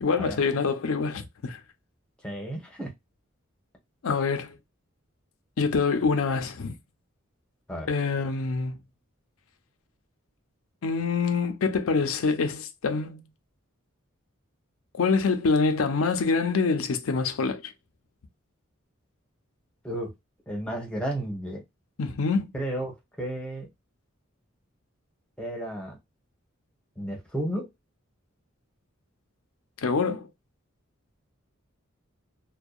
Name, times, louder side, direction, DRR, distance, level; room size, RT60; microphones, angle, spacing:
voice 1, 0.0-1.6 4.0-4.6 5.6-6.8 7.9-8.7 10.8-13.3 15.0-17.7 22.0-22.5 29.8-30.3, left 4 dB, 80° left, 0.5 m, -25 dB
voice 2, 2.2-2.9 7.7-7.9 19.8-20.1 20.5-21.6 22.5-23.7 25.4-26.0 27.0-27.7, right 1 dB, 5° left, 0.8 m, -33 dB
2.6 x 2.2 x 2.3 m
head